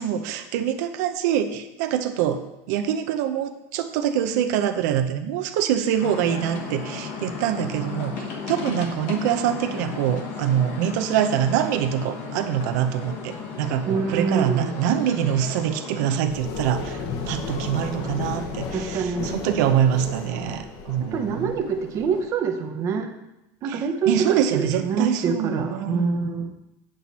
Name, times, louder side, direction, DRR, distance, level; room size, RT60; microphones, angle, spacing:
voice 1, 0.0-21.5 23.7-26.3, right 10 dB, 80° right, 8 dB, 0.7 m, -25 dB
sound 1, 6.0-16.2, left 5 dB, 60° left, 1.4 m, -35 dB
voice 2, 13.8-14.7 18.7-19.4 21.0-23.1 23.6-26.5, right 5 dB, 30° right, 4 dB, 0.8 m, -26 dB
sound 2, 16.3-22.3, left 5 dB, 45° left, 1.0 m, -34 dB
7.7 x 7.7 x 4.1 m, 0.93 s
cardioid pair, 165°, 9 cm